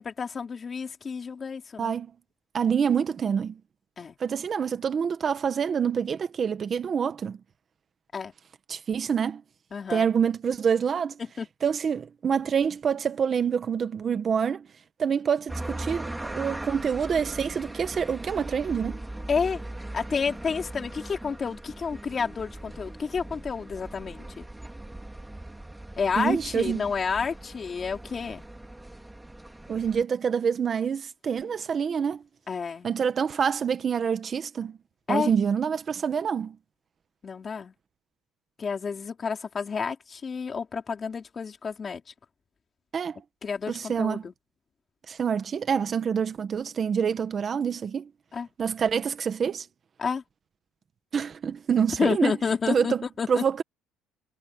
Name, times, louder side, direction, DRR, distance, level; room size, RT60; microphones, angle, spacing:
voice 1, 0.0-1.9 4.0-4.2 8.1-8.3 9.7-10.1 11.4-11.5 19.3-19.6 19.9-24.5 26.0-28.5 32.5-32.9 35.1-35.3 37.2-37.7 38.6-42.0 43.4-44.3 48.3-48.5 50.0-50.2 52.0-53.4, left 5 dB, 25° left, 3.8 m, -30 dB
voice 2, 1.8-2.1 2.5-3.6 4.2-7.4 8.7-9.4 9.9-11.2 11.6-14.7 15.0-19.0 26.2-26.9 29.7-32.2 32.8-34.8 35.1-36.6 42.9-43.2 43.7-44.2 45.1-48.1 48.6-49.7 51.1-52.3 52.7-53.6, right 7 dB, 30° right, 1.4 m, -26 dB
sound 1, 15.5-30.0, right 1 dB, 5° right, 2.5 m, -39 dB
cardioid pair, 140°, 0 cm